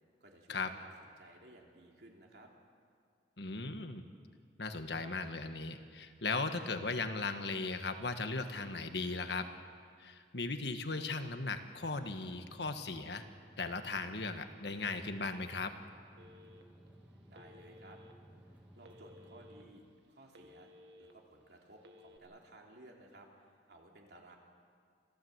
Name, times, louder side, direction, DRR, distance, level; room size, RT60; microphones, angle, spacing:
voice 1, 0.2-2.5 17.3-18.0 18.7-20.7 21.0-24.4, right 1 dB, 65° right, 0 dB, 3.4 m, -57 dB
voice 2, 3.4-4.0 4.6-9.5 10.0-13.2 13.6-15.7, left 3 dB, 70° left, 7 dB, 1.4 m, -37 dB
sound 1, 11.7-19.7, equal, 10° right, 2.3 m, -58 dB
Telephone, 16.2-16.9 17.3-18.1 18.8-19.6 20.0-21.1 21.8-22.2, left 2 dB, 85° right, 1.9 m, -58 dB
27.0 x 15.5 x 8.0 m, 2.2 s
head